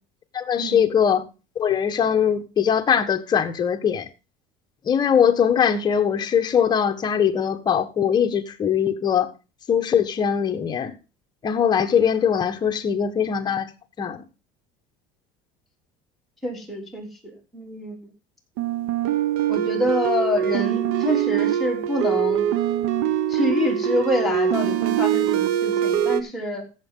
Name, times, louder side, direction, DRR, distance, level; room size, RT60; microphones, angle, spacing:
voice 1, 0.3-1.3 1.5-4.1 4.9-9.3 9.7-10.9 11.4-13.7 14.0-14.2, left 8 dB, 25° left, 1.3 m, -21 dB
voice 2, 16.4-17.1 17.5-18.1 19.5-22.5 23.3-26.6, left 1 dB, ahead, 3.5 m, -26 dB
sound 1, 18.6-26.2, right 10 dB, 80° right, 1.1 m, -23 dB
15.0 x 7.4 x 3.8 m
cardioid pair, 150°, 16 cm